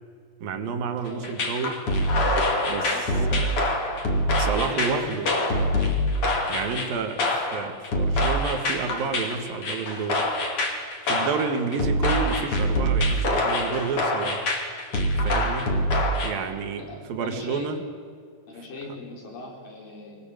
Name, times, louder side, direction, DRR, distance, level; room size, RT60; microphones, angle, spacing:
voice 1, 0.4-1.8 2.7-3.5 4.4-5.3 6.5-10.2 11.0-14.5 15.1-15.7 16.2-17.8, right 5 dB, 90° right, 8 dB, 3.5 m, -30 dB
voice 2, 1.0-1.4 2.9-3.6 4.5-5.1 16.8-17.8 18.5-20.2, left 2 dB, 75° left, 0 dB, 6.0 m, -39 dB
sound 1, 1.2-16.3, left 1 dB, 45° left, 3.4 m, -25 dB
23.0 x 18.5 x 9.0 m, 2.1 s
omnidirectional pair, 3.9 m